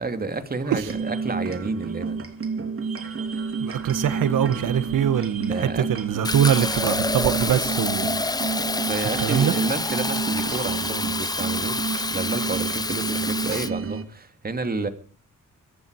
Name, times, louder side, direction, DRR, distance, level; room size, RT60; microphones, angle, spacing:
voice 1, 0.0-2.2 5.5-5.9 8.9-14.9, right 3 dB, 30° right, 2.6 m, -30 dB
sound 1, 0.8-14.0, right 5 dB, 45° right, 2.9 m, -30 dB
voice 2, 3.6-8.4 9.2-9.6, right 9 dB, 90° right, 1.7 m, -23 dB
Fill (with liquid), 6.2-13.7, left 3 dB, 15° left, 0.7 m, -27 dB
24.0 x 10.5 x 4.8 m
cardioid pair, 110°, 31 cm